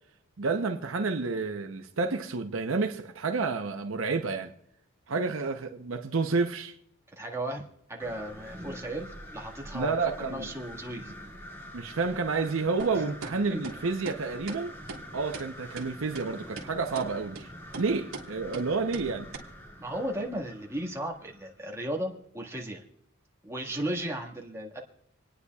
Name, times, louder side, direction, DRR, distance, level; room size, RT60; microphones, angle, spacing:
voice 1, 0.4-4.5 5.1-6.7 9.7-10.5 11.7-14.7 15.1-17.5 17.8-19.3, right 4 dB, 65° right, 0.7 m, -30 dB
voice 2, 7.2-7.6 7.9-11.1 12.9-13.0 13.5-13.6 19.8-22.8 23.4-24.8, right 1 dB, 15° right, 1.7 m, -35 dB
sound 1, 8.0-21.6, equal, 10° left, 2.1 m, -46 dB
sound 2, 12.8-12.9 13.2-13.3 13.6-13.8 14.1-14.2 14.5-14.6 14.9-15.0 15.3-15.5 15.8-15.9 16.1-16.2 16.6-16.7 16.9-17.1 17.4-17.5 17.7-17.9 18.1-18.3 18.5-18.7 18.9-19.1 19.3-19.4, right 3 dB, 85° right, 1.9 m, -39 dB
28.0 x 9.7 x 2.3 m
head